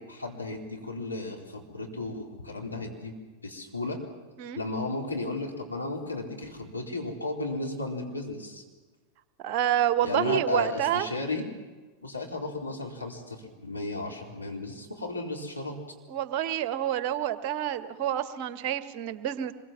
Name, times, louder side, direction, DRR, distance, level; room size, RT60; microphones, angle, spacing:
voice 1, 0.0-3.2 3.4-4.0 4.6-8.6 10.0-11.4 12.0-15.8, left 2 dB, 85° left, 0 dB, 4.2 m, -34 dB
voice 2, 9.4-11.1 16.1-19.5, right 11 dB, 45° right, 12 dB, 1.5 m, -28 dB
25.5 x 23.0 x 7.5 m, 1.3 s
figure-of-eight pair, 90°, 0 cm